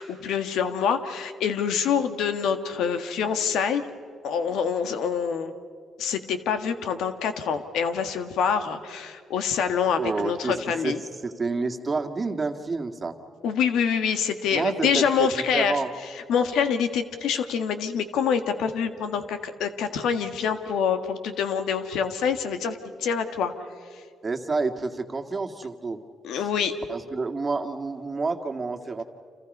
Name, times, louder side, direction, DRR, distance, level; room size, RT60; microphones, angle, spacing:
voice 1, 0.0-3.9 4.2-5.5 6.0-11.0 13.4-15.8 16.3-23.7 23.9-24.0 26.2-26.7, left 7 dB, 80° left, 9 dB, 1.7 m, -26 dB
voice 2, 10.0-10.9 11.2-13.2 14.5-15.9 24.2-26.0 26.9-29.0, right 3 dB, 30° right, 5 dB, 2.0 m, -29 dB
30.0 x 27.5 x 5.5 m, 2.2 s
cardioid pair, 90°, 0 cm